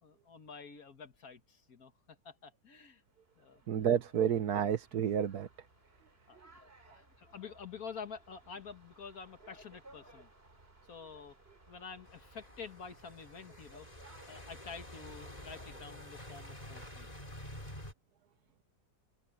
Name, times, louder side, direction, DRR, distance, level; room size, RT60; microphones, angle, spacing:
voice 1, 0.0-3.0 3.4-3.6 6.3-6.4 6.8-10.3 10.9-11.4 11.7-13.9 14.3-17.1, left 5 dB, 60° left, 2.0 m, -48 dB
sound 1, 3.1-15.8, right 2 dB, 35° right, 3.5 m, -61 dB
voice 2, 3.7-5.5, right 8 dB, 70° right, 1.6 m, -30 dB
sound 2, 12.1-17.9, left 1 dB, 20° left, 3.7 m, -49 dB
open air
omnidirectional pair, 1.8 m